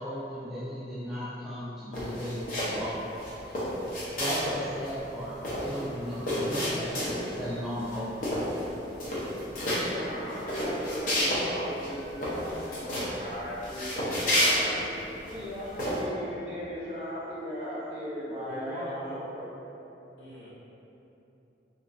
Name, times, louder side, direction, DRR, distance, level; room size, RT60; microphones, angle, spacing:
voice 1, 0.0-3.0 4.1-8.2, equal, ahead, -11 dB, 0.3 m, -36 dB
sound 1, 1.9-2.8 3.2-4.6 4.8-4.9 5.2-7.4 7.8-8.0 8.2-8.7 8.9-9.8 10.3-11.4 11.8-11.9 12.2-13.1 13.6-15.3 15.8-16.0, equal, 50° left, 0.7 m, -30 dB
voice 2, 9.5-14.8 15.3-19.5, equal, 35° right, -9 dB, 0.9 m, -37 dB
voice 3, 18.4-19.2 20.2-20.5, right 1 dB, 75° left, -8 dB, 0.9 m, -40 dB
3.4 x 2.8 x 2.6 m, 3.0 s
head